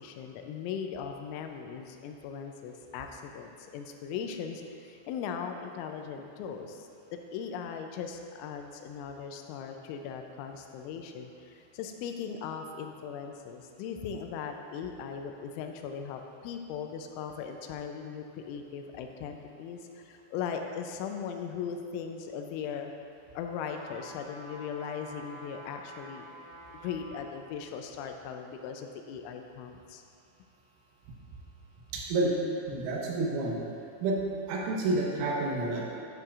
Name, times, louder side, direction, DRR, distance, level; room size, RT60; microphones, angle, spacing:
voice 1, 0.0-6.9 7.1-22.9 23.3-26.3 26.8-30.0, left 7 dB, 85° left, 4 dB, 2.8 m, -39 dB
sound 1, 23.6-27.3 27.8-27.9, equal, 60° left, 1.6 m, -48 dB
voice 2, 31.9-32.4 32.7-33.6 34.0-34.2 34.5-35.9, right 2 dB, 80° right, -3 dB, 3.6 m, -29 dB
10.0 x 9.2 x 2.5 m, 2.4 s
omnidirectional pair, 5.8 m